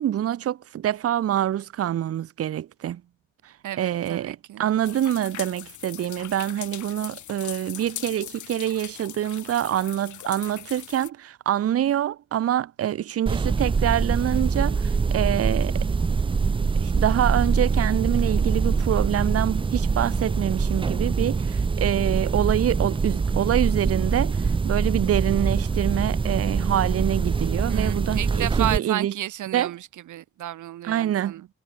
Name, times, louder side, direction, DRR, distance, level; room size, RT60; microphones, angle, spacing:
voice 1, 0.0-3.0 3.4-15.9 16.8-29.1 29.5-29.7 30.8-31.3, right 11 dB, 50° right, 0.8 m, -26 dB
voice 2, 3.6-4.7 27.7-31.5, right 13 dB, 75° right, 3.8 m, -32 dB
sound 1, 4.8-11.1, left 12 dB, 75° left, 6.0 m, -40 dB
sound 2, 13.3-28.8, right 5 dB, 15° right, 0.4 m, -24 dB
cardioid pair, 90°, 30 cm